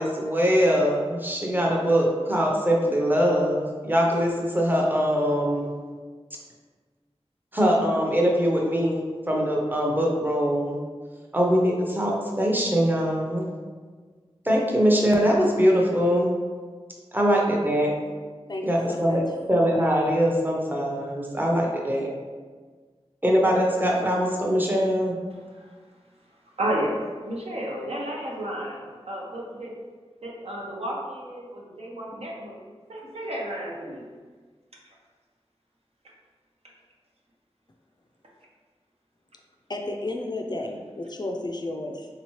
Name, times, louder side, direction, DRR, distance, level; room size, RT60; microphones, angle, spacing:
voice 1, 0.0-5.7 7.5-10.8 11.3-13.5 14.4-16.3 17.1-17.9 18.6-22.1 23.2-25.2, equal, 15° right, -2 dB, 0.7 m, -22 dB
voice 2, 18.5-19.2 39.7-42.1, left 2 dB, 40° left, 2 dB, 0.4 m, -32 dB
voice 3, 26.6-29.7 30.2-32.6 32.9-34.1, right 1 dB, 70° right, -3 dB, 0.7 m, -32 dB
3.5 x 2.9 x 3.0 m, 1.5 s
wide cardioid pair, 50°, 11 cm